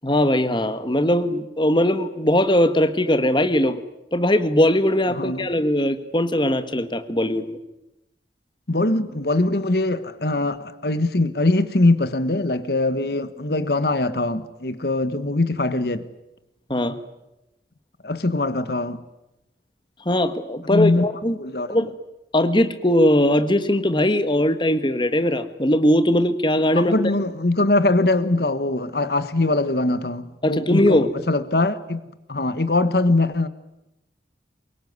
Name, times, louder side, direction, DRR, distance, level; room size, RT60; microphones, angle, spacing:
voice 1, 0.0-3.8 4.1-7.6 16.7-17.0 20.0-21.4 21.7-21.9 22.3-26.9 30.4-31.1, left 1 dB, 25° left, 1.6 m, -20 dB
voice 2, 8.7-16.1 18.0-19.0 20.6-21.0 21.4-21.9 26.7-32.0 32.3-33.5, left 2 dB, 60° left, 1.3 m, -22 dB
24.0 x 22.5 x 9.6 m
head